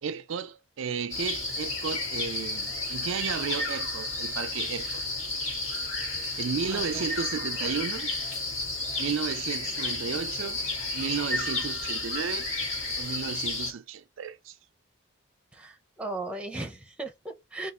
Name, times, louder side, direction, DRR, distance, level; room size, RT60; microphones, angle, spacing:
voice 1, 0.0-5.0 6.4-8.1 9.0-10.6 10.9-12.5 13.0-14.6, right 6 dB, 70° right, 0.4 m, -33 dB
sound 1, 1.1-13.7, left 2 dB, 65° left, 1.9 m, -32 dB
voice 2, 6.7-7.0 15.5-17.7, right 2 dB, 5° right, 0.8 m, -37 dB
3.9 x 2.4 x 4.4 m
head